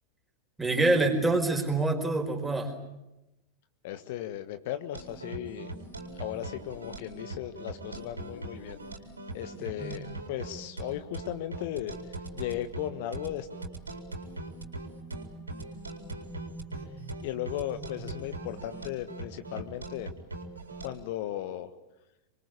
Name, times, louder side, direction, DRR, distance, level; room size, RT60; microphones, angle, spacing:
voice 1, 0.6-2.7 9.6-10.0, right 2 dB, 5° right, 3 dB, 5.0 m, -26 dB
voice 2, 3.8-5.7 6.1-8.8 9.3-11.9 12.3-13.5 17.2-20.1 20.8-21.7, left 12 dB, 50° left, 10 dB, 1.4 m, -36 dB
sound 1, 4.9-20.9, right 2 dB, 80° right, 4.5 m, -40 dB
26.5 x 23.5 x 8.5 m, 0.94 s
figure-of-eight pair, 90°, 0 cm